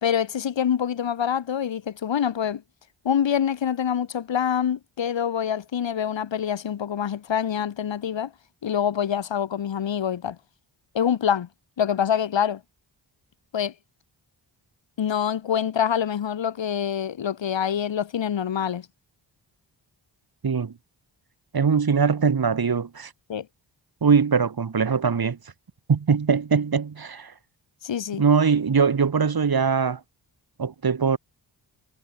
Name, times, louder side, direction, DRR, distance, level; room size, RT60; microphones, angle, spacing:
voice 1, 0.0-2.6 3.0-8.3 8.6-10.4 10.9-11.5 11.8-12.6 13.5-13.7 15.0-18.9 23.3-23.5 27.8-28.2, left 8 dB, 70° left, 1.5 m, -25 dB
voice 2, 21.5-23.1 24.0-25.4 25.9-27.3 28.2-30.0 30.6-31.2, right 6 dB, 50° right, 2.2 m, -21 dB
cardioid pair, 70°, 46 cm